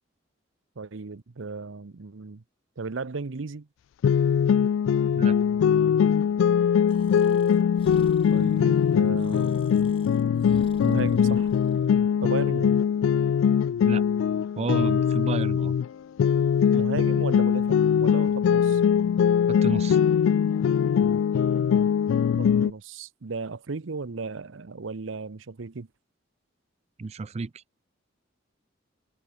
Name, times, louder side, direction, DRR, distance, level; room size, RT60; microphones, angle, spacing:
voice 1, 0.8-2.4 2.8-3.7 8.3-9.6 10.8-11.5 12.2-12.8 16.7-18.8 22.4-25.9, right 4 dB, 80° right, 0.8 m, -35 dB
sound 1, 4.0-15.9 16.2-22.7, left 7 dB, 85° left, 0.3 m, -22 dB
Breathing, 6.9-12.0, left 2 dB, 30° left, 1.3 m, -51 dB
voice 2, 14.6-15.8 19.5-20.0 27.0-27.5, right 3 dB, 35° right, 0.4 m, -31 dB
head